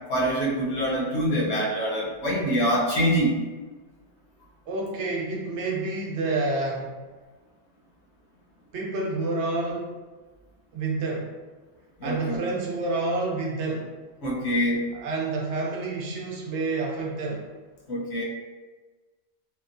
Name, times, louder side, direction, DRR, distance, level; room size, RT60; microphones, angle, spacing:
voice 1, 0.1-3.4 12.0-12.4 14.2-14.8 17.9-18.2, equal, 70° left, -4 dB, 0.9 m, -25 dB
voice 2, 4.7-6.9 8.7-10.0 10.7-11.3 12.0-13.9 14.9-17.5, right 3 dB, 75° right, -2 dB, 0.9 m, -29 dB
2.8 x 2.1 x 2.5 m, 1.3 s
omnidirectional pair, 1.2 m